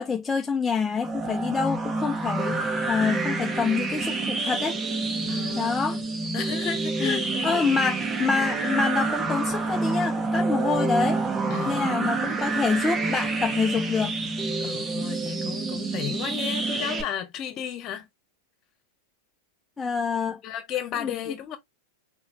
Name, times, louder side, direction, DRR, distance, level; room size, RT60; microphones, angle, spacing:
voice 1, 0.0-2.6 2.9-4.8 5.5-6.0 7.0-11.2 11.6-14.1 19.8-20.4 21.0-21.1, left 5 dB, 15° left, 0.7 m, -26 dB
sound 1, 1.0-17.0, right 3 dB, 20° right, 1.6 m, -28 dB
voice 2, 5.3-6.1 6.3-7.6 11.5-12.2 14.6-18.1 20.4-21.6, left 9 dB, 40° left, 1.5 m, -34 dB
4.0 x 4.0 x 2.8 m
hypercardioid pair, 100°, 0 cm